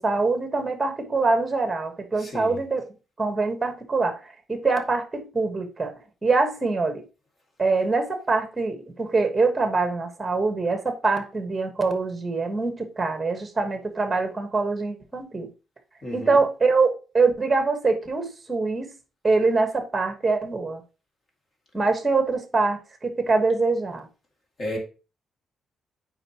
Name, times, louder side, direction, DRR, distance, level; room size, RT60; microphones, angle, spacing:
voice 1, 0.0-2.8 3.2-5.9 6.2-7.0 7.6-15.5 16.1-18.9 19.2-20.8 21.7-24.1, right 3 dB, 15° right, 1.3 m, -24 dB
voice 2, 2.2-2.6 16.0-16.4 24.6-24.8, left 1 dB, 35° left, 2.1 m, -33 dB
8.9 x 4.7 x 2.9 m
cardioid pair, 160°, 0 cm